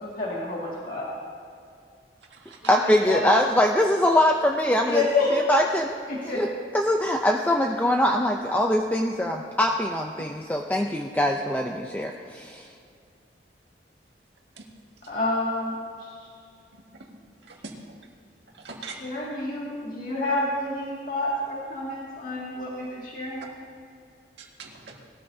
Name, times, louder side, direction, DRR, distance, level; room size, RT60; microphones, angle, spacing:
voice 1, 0.0-1.1 2.8-3.4 4.8-5.3 6.1-6.4 15.1-16.1 18.8-23.4, left 2 dB, 50° left, -5 dB, 2.2 m, -29 dB
voice 2, 2.7-5.0 5.3-6.0 6.3-6.5 6.7-12.7, left 1 dB, 10° left, 1 dB, 0.5 m, -23 dB
voice 3, 17.5-18.0 18.5-19.0 24.4-25.0, right 3 dB, 80° right, 0 dB, 1.9 m, -42 dB
19.5 x 13.5 x 2.8 m, 2.4 s
head